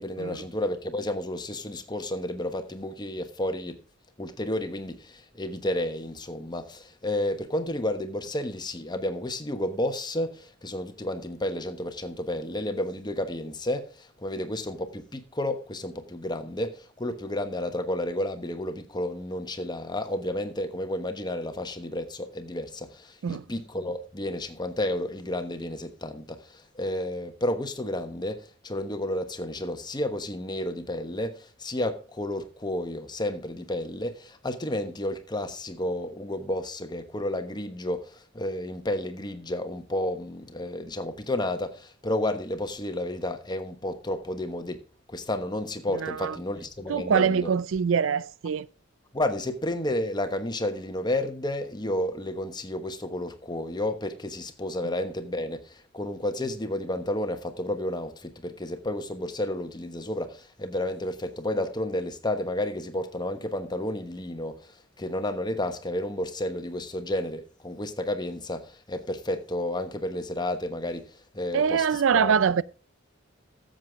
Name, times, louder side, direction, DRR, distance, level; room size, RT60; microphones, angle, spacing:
voice 1, 0.0-3.8 4.2-44.8 45.1-47.5 49.1-64.7 65.0-71.8 72.1-72.4, left 1 dB, 20° left, 1.2 m, -31 dB
voice 2, 45.9-46.4 46.9-48.7 71.5-72.6, right 6 dB, 70° right, 0.4 m, -24 dB
13.5 x 7.7 x 3.6 m
head